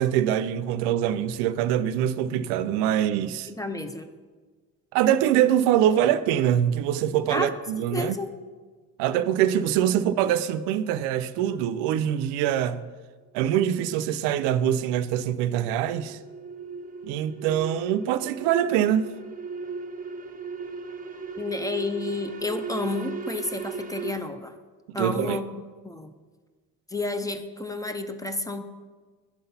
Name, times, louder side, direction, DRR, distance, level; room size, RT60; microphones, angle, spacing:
voice 1, 0.0-3.5 4.9-8.2 9.0-12.8 13.3-16.2 17.0-19.1 25.0-25.4, right 10 dB, 85° right, 0.5 m, -24 dB
voice 2, 3.5-4.1 7.3-7.5 7.9-8.3 21.4-24.5 24.9-26.1 26.9-28.6, left 2 dB, 10° left, 0.6 m, -31 dB
sound 1, 15.1-24.1, right 5 dB, 20° right, 1.1 m, -38 dB
10.5 x 3.9 x 5.6 m
supercardioid pair, 75°, 41 cm